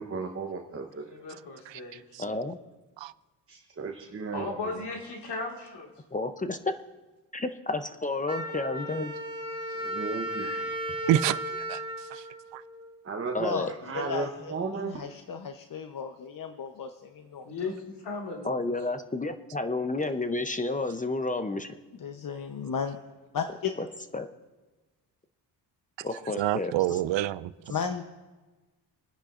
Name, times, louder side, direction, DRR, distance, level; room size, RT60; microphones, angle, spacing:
voice 1, 0.0-1.1 3.5-4.4 9.8-10.5 13.0-13.5 13.9-15.0, right 4 dB, 30° right, 1.0 m, -34 dB
voice 2, 0.8-2.3 4.3-5.9 10.2-11.3 17.4-18.6, left 3 dB, 70° left, 2.0 m, -37 dB
voice 3, 2.2-2.6 6.1-6.7 7.3-9.1 13.3-13.7 18.4-21.7 24.1-24.3 26.0-27.0, left 2 dB, 20° left, 0.6 m, -31 dB
Wind instrument woodwind instrument, 8.3-13.1, right 1 dB, 15° right, 2.1 m, -35 dB
voice 4, 11.7-12.2 12.5-12.6 26.0-26.1 26.4-27.5, right 13 dB, 85° right, 0.5 m, -27 dB
voice 5, 13.4-17.5 22.0-23.0 23.3-23.7 27.7-28.0, left 6 dB, 50° left, 0.8 m, -34 dB
29.0 x 10.0 x 2.5 m
cardioid pair, 110°, 43 cm